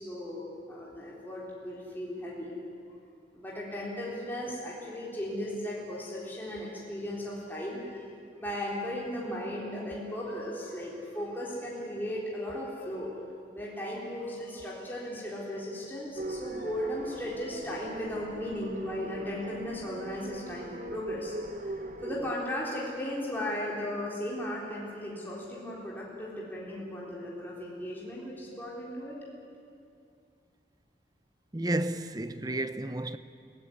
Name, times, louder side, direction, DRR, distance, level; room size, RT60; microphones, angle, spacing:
voice 1, 0.0-2.5 3.3-8.0 8.4-13.2 13.5-29.2, left 1 dB, 10° left, 3.8 m, -36 dB
sound 1, 16.2-22.4, right 1 dB, 45° right, 0.9 m, -40 dB
voice 2, 31.5-33.2, right 1 dB, 20° right, 0.7 m, -31 dB
22.5 x 17.5 x 9.7 m
head